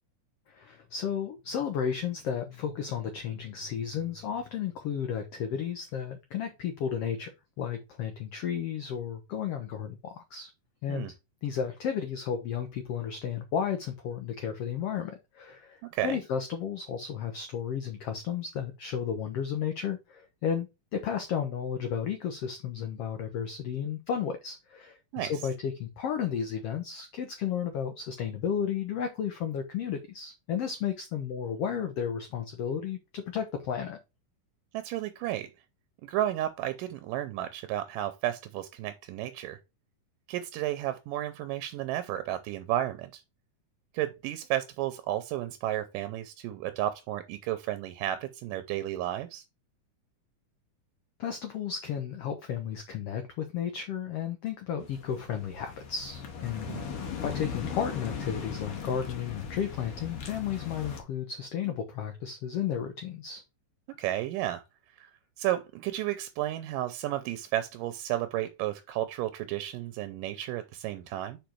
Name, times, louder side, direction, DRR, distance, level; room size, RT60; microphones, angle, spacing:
voice 1, 0.5-7.3 7.6-10.5 10.8-11.1 11.4-34.0 51.2-56.7 57.2-63.4, left 8 dB, 80° left, 1.3 m, -33 dB
voice 2, 34.7-35.5 36.0-39.6 40.3-43.2 43.9-49.4 56.7-56.9 64.0-64.6 65.0-71.4, right 13 dB, 85° right, 2.2 m, -32 dB
sound 1, 54.8-61.0, left 6 dB, 60° left, 1.6 m, -38 dB
5.1 x 5.0 x 4.4 m
omnidirectional pair, 3.8 m